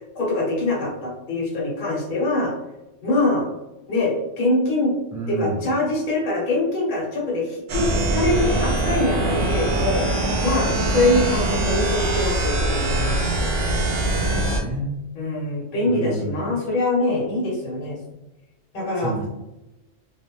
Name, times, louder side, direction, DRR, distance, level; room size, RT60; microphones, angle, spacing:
voice 1, 0.1-2.5 3.0-3.5 3.9-4.9 5.3-13.5 15.2-18.0 18.7-19.1, left 2 dB, 45° left, -4 dB, 0.8 m, -24 dB
voice 2, 5.1-5.7 10.7-10.8 14.2-14.9 15.9-16.5 19.0-19.3, right 2 dB, 25° right, -7 dB, 0.4 m, -30 dB
sound 1, 7.7-14.6, right 2 dB, 60° right, 0.7 m, -22 dB
2.4 x 2.0 x 3.0 m, 0.97 s
omnidirectional pair, 1.3 m